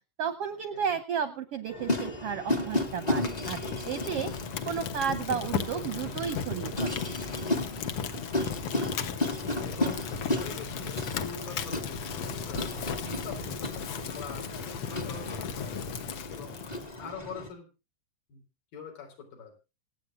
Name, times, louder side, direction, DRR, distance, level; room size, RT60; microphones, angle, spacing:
voice 1, 0.2-4.3 4.7-7.0, right 7 dB, 75° right, 11 dB, 1.4 m, -33 dB
sound 1, 1.7-17.5, left 1 dB, 25° left, 0.8 m, -34 dB
Fire, 2.6-17.0, left 6 dB, 65° left, 1.5 m, -36 dB
voice 2, 9.7-10.0 10.4-12.7 13.1-13.5 13.9-14.5 14.9-15.8 16.3-16.5 17.0-17.7 18.3-18.4 18.7-19.5, left 5 dB, 80° left, 2 dB, 5.6 m, -44 dB
25.5 x 8.8 x 2.5 m, 0.28 s
omnidirectional pair, 3.9 m